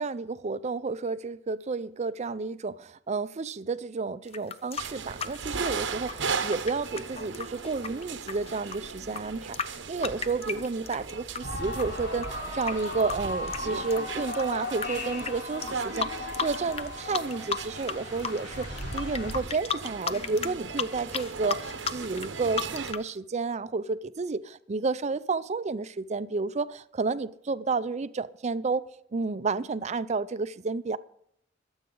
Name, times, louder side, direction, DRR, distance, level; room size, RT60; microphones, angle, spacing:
voice 1, 0.0-28.8 29.1-31.0, right 4 dB, 40° right, 0.5 m, -31 dB
sound 1, 4.3-11.4 11.7-14.9 15.2-15.3 15.6-16.9 17.1-17.9 18.2-23.1, left 6 dB, 35° left, 0.6 m, -34 dB
sound 2, 4.8-22.9, right 5 dB, 85° right, 0.9 m, -38 dB
sound 3, 11.4-19.4, left 1 dB, 60° left, 4.1 m, -37 dB
22.0 x 8.0 x 3.9 m
head